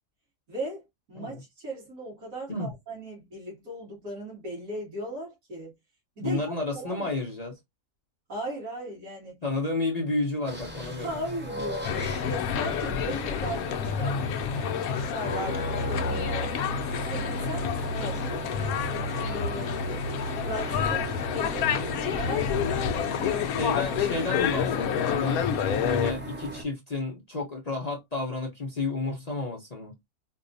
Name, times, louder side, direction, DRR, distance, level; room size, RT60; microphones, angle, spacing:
voice 1, 0.5-0.8 1.1-5.7 6.2-7.1 8.3-9.4 10.8-14.2 14.5-16.5 17.1-19.7 20.4-23.5 23.8-23.9, right 1 dB, 55° right, 2.3 m, -38 dB
voice 2, 6.2-7.6 9.4-11.2 23.6-25.4 25.7-30.0, left 2 dB, 40° left, 0.6 m, -31 dB
sound 1, 10.5-26.6, equal, 10° right, 0.7 m, -38 dB
sound 2, 11.8-26.1, left 7 dB, 70° left, 0.9 m, -28 dB
4.6 x 2.2 x 2.6 m
omnidirectional pair, 1.7 m